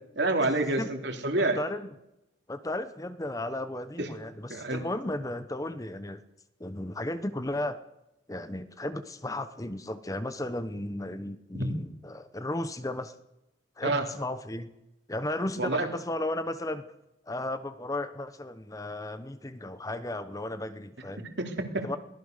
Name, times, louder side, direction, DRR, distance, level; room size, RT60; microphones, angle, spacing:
voice 1, 0.1-1.6 4.0-4.1 4.5-4.8 11.5-11.8 13.8-14.0 15.6-15.9 21.4-21.8, right 2 dB, 65° right, 5 dB, 3.1 m, -28 dB
voice 2, 1.5-1.9 2.5-6.2 6.6-7.8 8.3-13.2 13.8-14.7 15.1-16.9 17.2-21.3 21.8-22.0, left 1 dB, 15° left, 12 dB, 0.9 m, -34 dB
22.5 x 17.5 x 6.7 m, 0.88 s
head